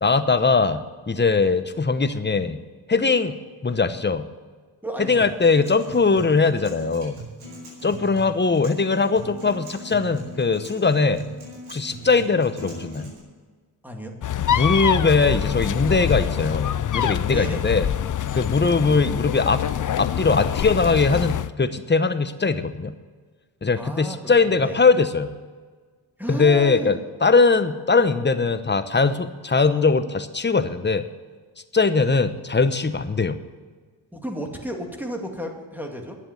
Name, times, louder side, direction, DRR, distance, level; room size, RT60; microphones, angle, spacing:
voice 1, 0.0-2.6 2.9-3.4 3.6-4.3 5.0-7.2 7.8-11.3 11.7-13.1 14.5-17.9 18.3-19.6 20.0-22.9 23.6-25.3 26.3-31.0 31.7-33.4, left 4 dB, 20° left, 11 dB, 0.9 m, -20 dB
voice 2, 4.8-5.4 13.8-14.1 17.3-17.7 23.8-24.2 24.5-24.8 26.2-27.0 34.1-36.2, equal, 5° right, 2 dB, 2.3 m, -32 dB
Acoustic guitar, 5.2-13.2, right 1 dB, 85° right, 4.8 m, -40 dB
sound 1, 14.2-21.5, left 10 dB, 40° left, 0.5 m, -25 dB
10.5 x 7.4 x 9.7 m, 1.5 s
cardioid pair, 60°, 48 cm